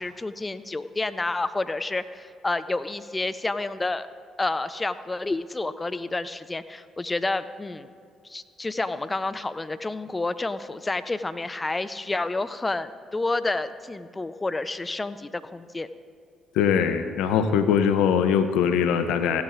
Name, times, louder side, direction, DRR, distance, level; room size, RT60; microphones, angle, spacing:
voice 1, 0.0-4.1 4.4-7.9 8.2-15.9, left 2 dB, 20° left, 12 dB, 0.6 m, -29 dB
voice 2, 16.6-19.4, left 7 dB, 70° left, 9 dB, 0.6 m, -22 dB
16.5 x 11.5 x 2.5 m, 2.4 s
hypercardioid pair, 50°, 0 cm